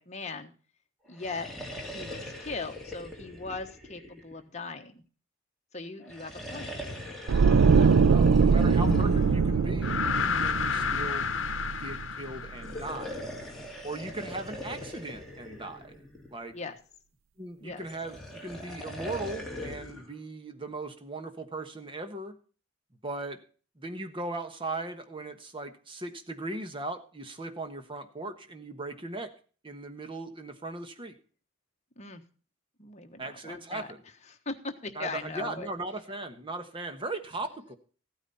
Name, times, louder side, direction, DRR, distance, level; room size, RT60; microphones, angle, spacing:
voice 1, 0.1-0.5 1.1-1.5 1.9-5.0 5.7-6.7 14.1-14.2 16.5-16.8 17.6-17.9 32.0-32.2 32.8-33.9 34.4-35.7, left 3 dB, 35° left, 5 dB, 1.3 m, -39 dB
sound 1, 1.1-4.7 6.0-10.3 12.5-16.5 17.8-20.1, left 1 dB, ahead, 2.5 m, -41 dB
sound 2, 7.3-12.4 12.6-12.9, right 5 dB, 85° right, 0.4 m, -23 dB
voice 2, 7.7-11.3 11.8-13.2 13.8-16.0 16.3-16.5 17.4-22.3 23.0-23.4 23.8-29.3 29.6-31.2 33.2-34.0 34.9-37.8, right 2 dB, 25° right, 7 dB, 1.3 m, -38 dB
sound 3, 8.8-13.2, left 5 dB, 65° left, 1.0 m, -31 dB
15.0 x 9.2 x 4.2 m, 0.40 s
head